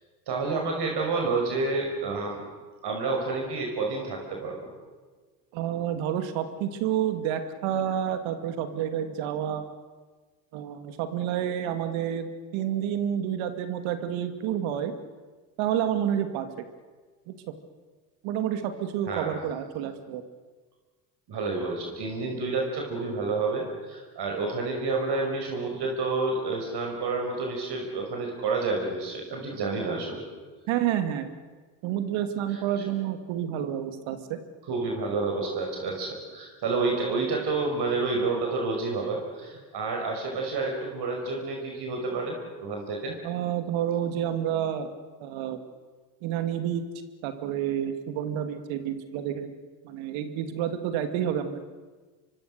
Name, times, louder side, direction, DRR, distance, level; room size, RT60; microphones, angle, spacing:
voice 1, 0.3-2.4 2.8-4.7 19.1-19.3 21.3-30.2 32.5-32.9 34.7-43.2, right 3 dB, 50° right, 1 dB, 5.6 m, -29 dB
voice 2, 5.5-9.6 10.5-14.9 15.6-16.5 17.3-17.4 18.2-20.2 30.7-31.3 31.8-34.4 43.2-44.9 45.2-45.6 46.2-46.8 47.2-49.5 49.8-51.6, right 10 dB, 65° right, 9 dB, 2.3 m, -29 dB
25.0 x 24.0 x 6.6 m, 1.4 s
hypercardioid pair, 70°, 50 cm